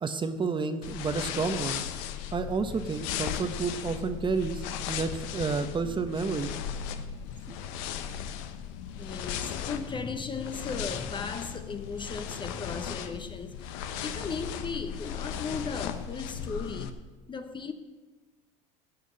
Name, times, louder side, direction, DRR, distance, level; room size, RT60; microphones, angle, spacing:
voice 1, 0.0-1.8 2.3-6.5 7.5-7.6, right 4 dB, 30° right, 1.0 m, -30 dB
sound 1, 0.8-16.9, left 8 dB, 75° left, 1.0 m, -37 dB
voice 2, 8.9-16.9 17.3-17.7, left 5 dB, 30° left, 0.9 m, -36 dB
17.0 x 5.8 x 7.8 m
supercardioid pair, 90°, 17 cm